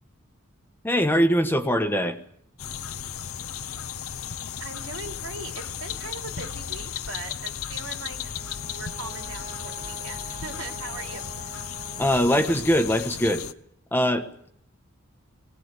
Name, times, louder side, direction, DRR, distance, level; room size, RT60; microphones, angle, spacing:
voice 1, 0.8-2.2 12.0-13.5 13.9-14.5, equal, 10° left, 7 dB, 1.4 m, -22 dB
sound 1, 2.6-13.5, left 8 dB, 85° left, 0.9 m, -35 dB
voice 2, 4.6-8.3 8.7-11.6, right 3 dB, 75° right, 3 dB, 3.5 m, -40 dB
Brass instrument, 7.8-12.9, right 5 dB, 30° right, 1.6 m, -45 dB
22.0 x 19.0 x 8.4 m, 0.68 s
head